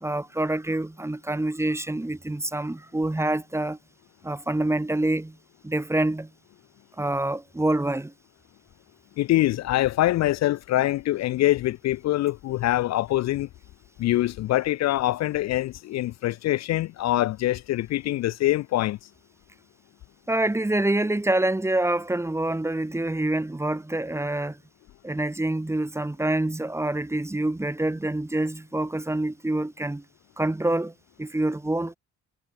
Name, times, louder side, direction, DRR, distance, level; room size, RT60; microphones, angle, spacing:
voice 1, 0.0-3.8 4.2-5.4 5.6-6.3 7.0-8.1 20.3-24.6 25.0-30.0 30.4-32.0, right 1 dB, 10° right, 1.0 m, -26 dB
voice 2, 9.2-13.5 14.0-19.0, left 15 dB, 60° left, 0.4 m, -24 dB
cardioid pair, 90°, 30 cm